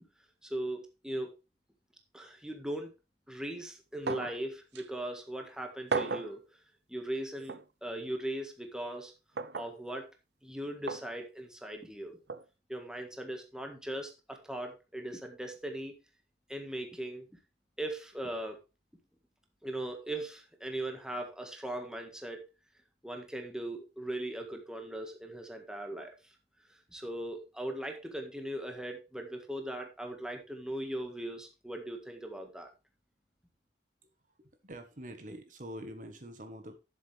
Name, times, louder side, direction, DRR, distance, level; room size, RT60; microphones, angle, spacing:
voice 1, 0.4-1.3 2.1-2.9 3.3-6.4 6.9-9.1 9.5-10.0 10.4-12.2 12.7-15.9 16.5-17.2 17.8-18.6 19.6-22.4 23.0-26.3 26.9-32.7, right 1 dB, 5° right, 4 dB, 1.7 m, -39 dB
sound 1, 4.1-4.4 4.8-4.9 5.9-6.3 7.5-7.6 9.4-9.7 10.9-11.1 12.3-12.4, right 4 dB, 70° right, 0.8 m, -34 dB
voice 2, 34.4-36.8, equal, 45° right, 7 dB, 1.4 m, -45 dB
12.0 x 7.4 x 3.4 m, 0.28 s
head